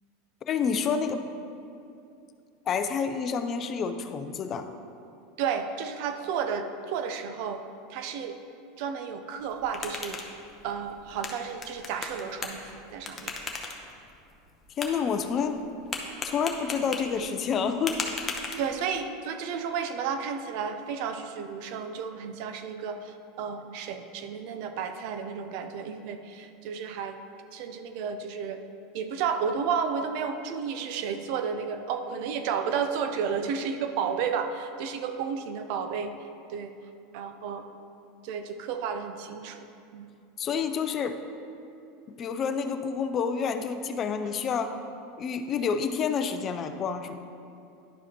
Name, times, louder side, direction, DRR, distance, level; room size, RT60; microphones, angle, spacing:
voice 1, 0.5-1.2 2.7-4.7 14.8-15.6 16.2-18.0 40.4-41.2 42.1-44.7 45.2-47.2, left 6 dB, 35° left, 9 dB, 0.4 m, -28 dB
voice 2, 5.4-7.6 7.9-8.4 8.8-10.2 10.6-13.3 16.7-16.9 18.6-27.2 27.5-28.6 28.9-36.1 36.5-36.7 37.1-37.7 38.2-39.7 39.9-40.1 44.2-44.4, right 6 dB, 60° right, 7 dB, 0.5 m, -32 dB
sound 1, 9.4-19.0, left 3 dB, 20° left, 0.9 m, -39 dB
11.0 x 4.8 x 2.9 m, 2.6 s
supercardioid pair, 110°, 0 cm